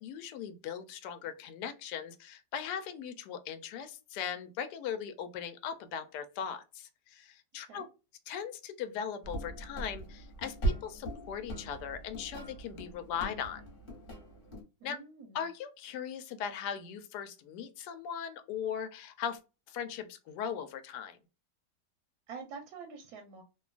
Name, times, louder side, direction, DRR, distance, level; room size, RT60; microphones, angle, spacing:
voice 1, 0.0-7.8 8.3-13.6 14.8-15.0 15.3-19.4 19.7-21.2, left 8 dB, 75° left, 1.1 m, -39 dB
sound 1, 9.2-14.6, right 2 dB, 35° left, 1.1 m, -39 dB
voice 2, 14.8-15.4 22.3-23.4, right 5 dB, 70° right, 1.0 m, -46 dB
2.9 x 2.2 x 2.3 m
omnidirectional pair, 1.9 m